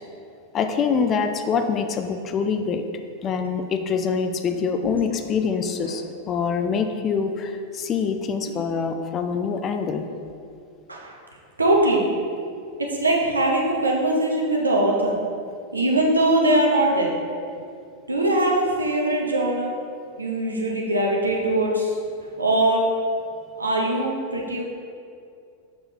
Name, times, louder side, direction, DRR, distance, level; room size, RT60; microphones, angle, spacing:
voice 1, 0.5-2.8 3.2-10.1, left 6 dB, 30° left, 7 dB, 0.4 m, -25 dB
voice 2, 5.6-6.0 10.9-11.2 11.6-12.1 12.8-15.2 15.7-17.1 18.1-19.7 20.2-21.9 22.4-22.8 23.6-24.6, right 1 dB, 80° right, -1 dB, 1.0 m, -21 dB
6.8 x 6.3 x 3.0 m, 2.4 s
figure-of-eight pair, 90°, 0 cm